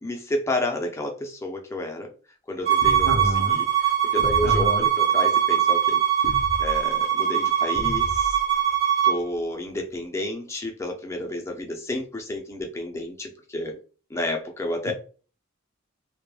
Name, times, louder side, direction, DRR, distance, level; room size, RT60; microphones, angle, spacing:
voice 1, 0.0-2.1 2.5-8.4 9.0-13.8 14.1-14.9, left 1 dB, 15° left, 2 dB, 0.4 m, -31 dB
Bowed string instrument, 2.6-9.2, right 9 dB, 30° right, 0.7 m, -22 dB
sound 1, 2.8-3.3 4.2-4.7 6.2-6.8 7.7-8.4, left 1 dB, 70° left, 0.5 m, -32 dB
voice 2, 3.0-3.6 4.4-4.9 14.9-15.0, right 1 dB, 85° right, 5 dB, 0.6 m, -27 dB
2.2 x 2.1 x 3.1 m, 0.37 s
head